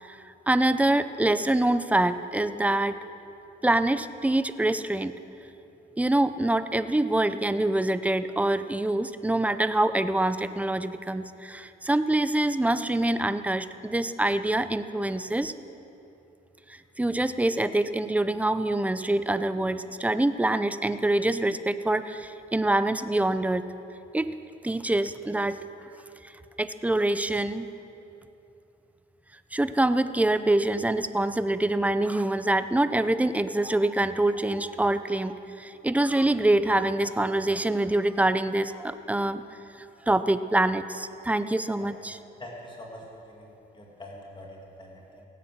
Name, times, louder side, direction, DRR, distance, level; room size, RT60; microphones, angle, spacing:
voice 1, 0.0-3.0 3.6-5.1 6.0-15.5 16.7-23.7 24.1-24.3 24.6-25.6 26.6-27.7 29.5-39.5 40.1-42.2, right 1 dB, 5° right, 12 dB, 0.6 m, -25 dB
voice 2, 42.4-45.3, left 1 dB, 25° left, -1 dB, 2.3 m, -44 dB
17.0 x 9.2 x 7.5 m, 2.8 s
cardioid pair, 90°, 20 cm